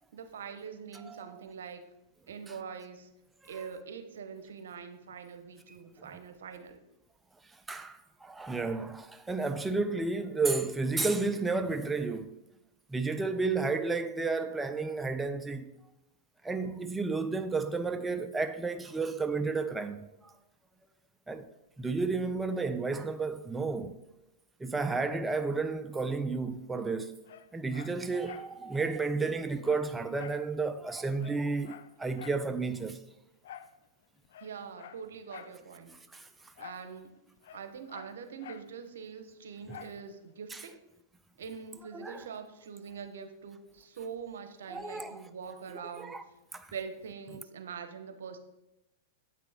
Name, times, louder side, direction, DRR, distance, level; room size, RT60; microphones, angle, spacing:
voice 1, 0.1-1.9 2.3-3.1 3.5-6.8 34.4-36.0 36.6-37.1 37.5-40.8 41.4-46.2 46.7-48.4, right 6 dB, 80° right, 0.8 m, -43 dB
voice 2, 1.0-1.4 3.4-3.7 5.7-6.1 7.7-12.3 12.9-15.7 16.4-20.3 21.3-21.5 21.8-24.0 24.6-27.1 27.5-33.0 36.1-36.3 40.5-40.6 41.9-42.3 44.7-45.2 46.0-46.2 46.5-46.7, right 3 dB, 10° right, 0.4 m, -32 dB
Dog, 27.2-28.5 28.8-28.9 29.2-30.5 30.8-30.9 31.2-32.5 33.4-33.8 34.2-35.6 36.6-36.9 37.2-38.7 39.7-40.0 40.5-40.6, left 10 dB, 70° left, 0.4 m, -49 dB
7.7 x 5.9 x 3.5 m
hypercardioid pair, 120°, 0 cm